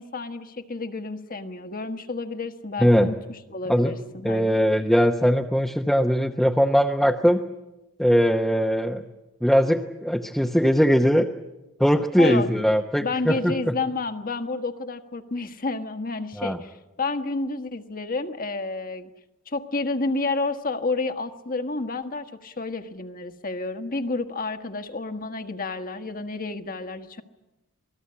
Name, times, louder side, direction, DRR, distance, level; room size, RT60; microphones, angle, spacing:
voice 1, 0.0-4.6 12.2-12.6 13.0-19.1 19.5-27.2, left 3 dB, 40° left, 7 dB, 1.4 m, -30 dB
voice 2, 2.8-3.1 3.7-3.9 4.2-7.4 8.0-9.0 9.4-11.3 11.8-13.7 16.4-16.6, equal, ahead, 1 dB, 0.9 m, -20 dB
27.5 x 19.5 x 8.7 m, 1.0 s
head